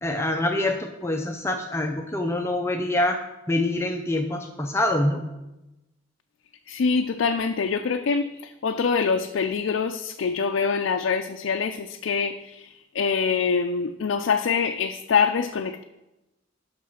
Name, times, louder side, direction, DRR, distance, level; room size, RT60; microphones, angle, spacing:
voice 1, 0.0-3.2 3.5-5.2, left 1 dB, 15° left, 3 dB, 0.5 m, -25 dB
voice 2, 6.7-15.8, left 5 dB, 75° left, 5 dB, 0.4 m, -25 dB
7.5 x 6.0 x 5.6 m, 0.98 s
head